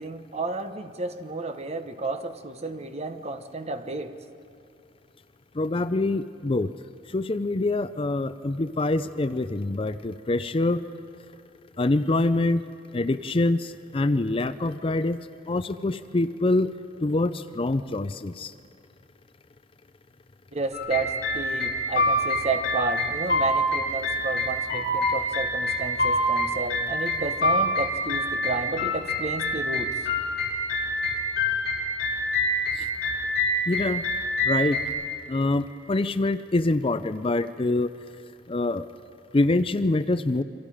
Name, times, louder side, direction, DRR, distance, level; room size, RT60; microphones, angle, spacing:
voice 1, 0.0-4.2 20.5-29.9, right 3 dB, 35° right, 8 dB, 1.1 m, -32 dB
voice 2, 5.6-6.7 7.1-10.8 11.8-12.6 12.9-15.2 15.5-16.7 17.0-18.5 32.8-32.9 33.7-34.0 34.4-34.8 35.3-37.9 38.5-38.9 39.3-40.4, left 2 dB, 30° left, 12 dB, 0.5 m, -25 dB
sound 1, 20.7-34.9, left 1 dB, 55° left, 7.4 m, -26 dB
28.0 x 24.5 x 5.0 m, 2.6 s
head